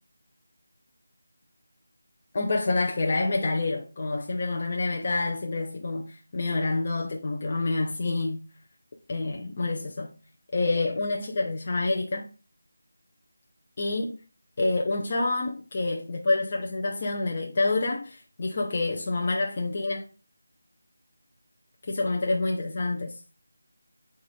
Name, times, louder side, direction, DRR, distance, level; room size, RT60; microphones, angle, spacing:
voice 1, 2.3-8.4 9.1-10.1 10.5-12.3 13.8-14.2 14.6-20.0 21.9-23.1, left 2 dB, 30° left, 0.5 m, -27 dB
4.1 x 2.4 x 4.4 m
figure-of-eight pair, 175°, 0 cm